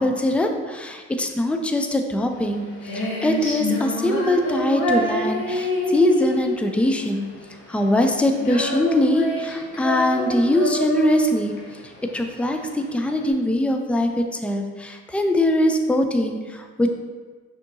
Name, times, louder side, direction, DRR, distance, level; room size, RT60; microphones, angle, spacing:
voice 1, 0.0-7.3 7.7-11.5 12.1-16.9, left 1 dB, 5° left, 4 dB, 0.3 m, -22 dB
Female singing, 2.3-13.3, left 1 dB, 80° left, 1.4 m, -27 dB
5.9 x 2.8 x 2.6 m, 1.4 s
cardioid pair, 90°, 30 cm